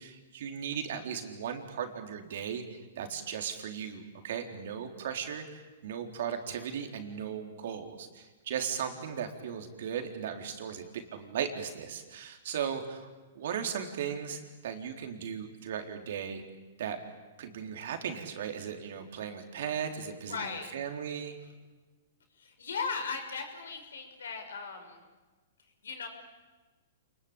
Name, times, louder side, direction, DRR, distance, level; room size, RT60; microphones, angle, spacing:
voice 1, 0.0-13.1 13.3-16.4 16.8-17.0 17.4-21.4, right 8 dB, 65° right, 5 dB, 4.0 m, -37 dB
voice 2, 20.3-20.7 22.4-25.0 25.8-26.1, left 5 dB, 80° left, 5 dB, 5.9 m, -37 dB
29.0 x 21.5 x 8.9 m, 1.3 s
hypercardioid pair, 125°, 0 cm